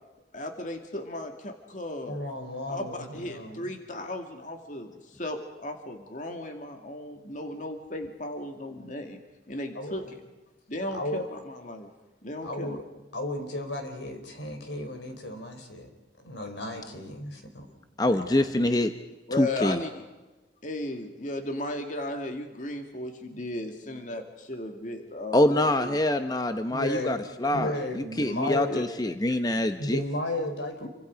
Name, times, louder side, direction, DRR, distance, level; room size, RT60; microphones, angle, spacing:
voice 1, 0.3-2.2 2.7-4.9 5.1-9.2 9.5-10.0 10.7-11.9 12.2-12.8 19.3-19.9 20.6-26.0 28.7-28.8 30.8-30.9, left 1 dB, 45° left, 4 dB, 2.1 m, -35 dB
voice 2, 2.1-3.7 9.7-10.0 10.9-11.3 12.4-12.8 13.1-15.9 16.2-17.7 18.0-18.5 23.2-23.4 23.8-24.0 26.7-27.2 27.5-28.8 29.8-30.9, left 1 dB, 85° left, 5 dB, 4.5 m, -34 dB
voice 3, 18.0-18.9 19.4-19.8 25.3-27.7 28.2-30.0, left 1 dB, 20° left, 8 dB, 0.9 m, -25 dB
28.5 x 24.5 x 5.2 m, 1.1 s
head